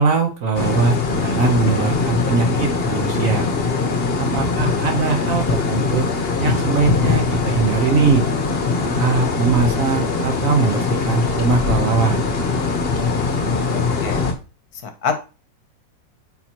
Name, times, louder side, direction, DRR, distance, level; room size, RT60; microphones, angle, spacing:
voice 1, 0.0-3.5 4.2-6.1 6.4-8.3 8.8-12.2, right 4 dB, 55° right, 4 dB, 1.2 m, -20 dB
sound 1, 0.5-14.3, left 4 dB, 40° left, 1.0 m, -21 dB
voice 2, 13.7-14.3 14.8-15.2, left 6 dB, 65° left, 7 dB, 1.3 m, -26 dB
8.9 x 4.1 x 2.9 m, 0.32 s
omnidirectional pair, 1.9 m